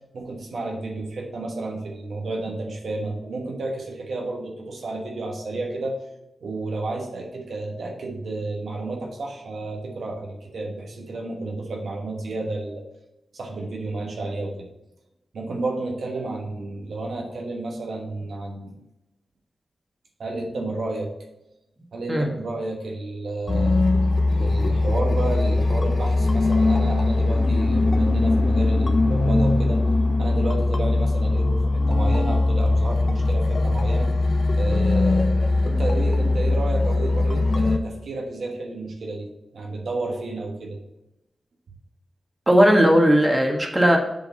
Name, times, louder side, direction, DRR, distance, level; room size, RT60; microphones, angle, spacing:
voice 1, 0.1-6.0 6.4-12.8 13.3-14.7 15.3-18.7 20.2-21.1 21.9-23.8 24.3-29.8 30.2-34.1 34.5-40.8, right 2 dB, 80° right, 0 dB, 1.2 m, -31 dB
sound 1, 23.5-37.8, left 2 dB, 55° left, 0.9 m, -20 dB
voice 2, 42.5-44.0, equal, 25° right, 2 dB, 1.5 m, -17 dB
7.5 x 3.9 x 5.5 m, 0.91 s
cardioid pair, 50°, 0 cm